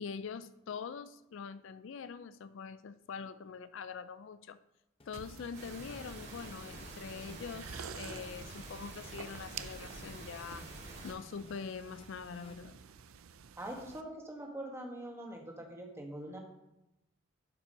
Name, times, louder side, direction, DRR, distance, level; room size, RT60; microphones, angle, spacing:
voice 1, 0.0-4.6 5.1-10.6 11.0-12.8, left 6 dB, 60° left, 14 dB, 0.3 m, -44 dB
sound 1, 5.0-13.2, left 1 dB, 25° left, 0.8 m, -57 dB
sound 2, 5.1-14.0, right 7 dB, 80° right, 0.5 m, -50 dB
sound 3, 5.5-11.1, right 2 dB, 55° right, 2.8 m, -48 dB
voice 2, 13.6-16.4, right 1 dB, 10° right, 1 dB, 1.5 m, -43 dB
12.0 x 5.6 x 5.2 m, 0.92 s
head